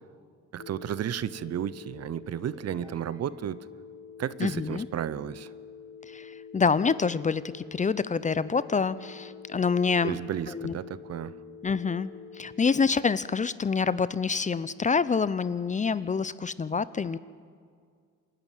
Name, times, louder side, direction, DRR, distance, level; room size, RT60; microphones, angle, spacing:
voice 1, 0.5-3.6 4.2-5.5 10.0-11.4, right 10 dB, 55° right, 18 dB, 0.7 m, -33 dB
Telephone, 0.6-12.8, left 7 dB, 65° left, 1.2 m, -46 dB
sound 1, 2.3-3.7, right 2 dB, 15° right, 2.9 m, -54 dB
voice 2, 4.4-4.9 6.1-10.2 10.5-10.8 11.6-17.2, left 5 dB, 25° left, 17 dB, 0.5 m, -27 dB
26.5 x 11.5 x 9.2 m, 2.1 s
cardioid pair, 90°, 30 cm